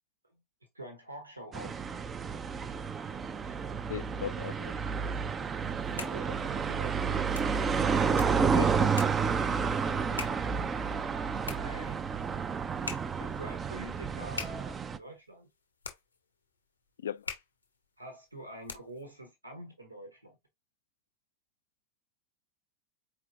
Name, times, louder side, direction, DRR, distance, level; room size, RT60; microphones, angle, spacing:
voice 1, 0.7-1.8 5.6-7.3 9.5-12.0 13.2-15.5 18.0-20.4, right 1 dB, 90° right, 1.1 m, -47 dB
sound 1, 1.5-15.0, right 6 dB, 20° right, 0.4 m, -30 dB
voice 2, 3.9-4.8 8.5-9.0 17.0-17.3, left 9 dB, 70° left, 0.3 m, -38 dB
sound 2, 5.6-19.1, left 4 dB, 85° left, 0.9 m, -46 dB
4.4 x 3.5 x 2.5 m
figure-of-eight pair, 85°, 0 cm